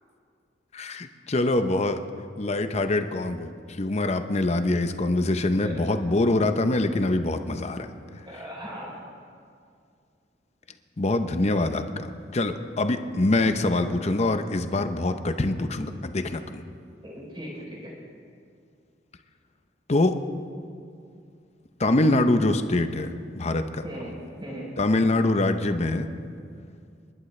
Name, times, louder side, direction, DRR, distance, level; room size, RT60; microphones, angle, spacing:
voice 1, 0.7-2.0 2.4-3.5 3.8-7.9 11.0-16.6 19.9-20.2 21.8-23.8 24.8-26.1, left 2 dB, 40° left, 8 dB, 0.7 m, -24 dB
voice 2, 8.3-9.0 17.0-17.9 23.8-24.7, equal, 30° right, -3 dB, 3.5 m, -38 dB
29.5 x 11.0 x 3.3 m, 2.3 s
head